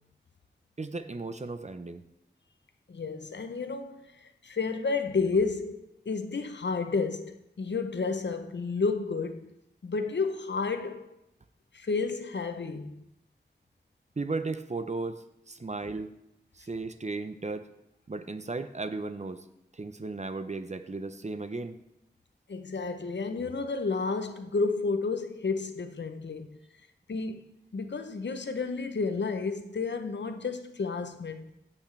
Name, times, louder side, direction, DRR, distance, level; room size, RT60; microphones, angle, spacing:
voice 1, 0.8-2.0 14.2-16.1 16.5-17.7 18.1-19.4 19.7-21.8, right 3 dB, 40° right, 0.7 m, -35 dB
voice 2, 2.9-9.5 9.8-11.2 11.7-13.0 22.5-26.6 27.1-27.4 27.7-31.5, left 4 dB, 85° left, 0.7 m, -31 dB
15.0 x 6.0 x 3.3 m
wide cardioid pair, 60°, 18 cm